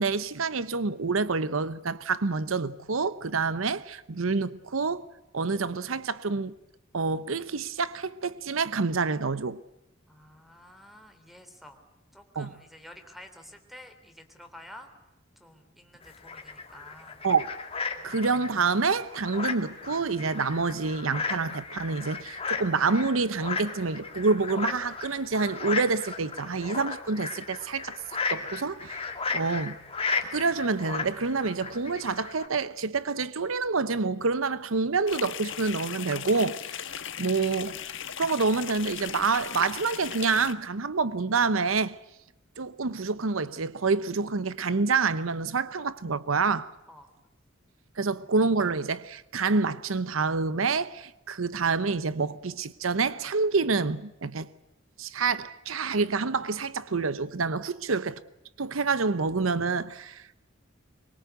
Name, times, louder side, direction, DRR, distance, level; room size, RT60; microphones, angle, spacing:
voice 1, 0.0-5.1 5.3-6.5 6.9-9.6 12.3-12.5 17.2-17.5 18.0-28.0 28.3-29.8 30.3-36.7 37.2-37.8 38.2-42.0 42.6-46.7 48.0-54.5 55.0-58.2 58.6-60.4, right 4 dB, 85° right, 0.8 m, -27 dB
voice 2, 10.1-11.8 12.1-14.9 15.4-17.2 17.9-18.2 46.9-47.1, left 1 dB, ahead, 3.4 m, -50 dB
sound 1, 16.0-32.5, left 4 dB, 30° left, 2.5 m, -35 dB
sound 2, 35.1-40.5, left 10 dB, 65° left, 1.3 m, -37 dB
24.5 x 22.5 x 8.2 m
head